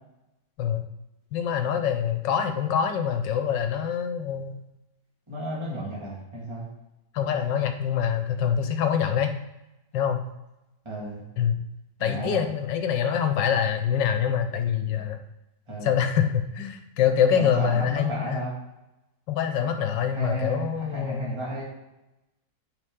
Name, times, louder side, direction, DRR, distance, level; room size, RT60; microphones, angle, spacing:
voice 1, 1.3-4.5 7.1-9.3 9.9-10.2 11.4-11.6 12.0-15.2 15.8-18.4 19.3-21.3, left 8 dB, 85° left, 6 dB, 1.5 m, -25 dB
voice 2, 5.3-6.7 10.8-11.2 12.0-12.4 15.7-15.9 17.3-18.5 20.1-21.6, right 1 dB, 15° right, -5 dB, 2.0 m, -33 dB
8.1 x 5.2 x 3.7 m, 0.94 s
omnidirectional pair, 1.9 m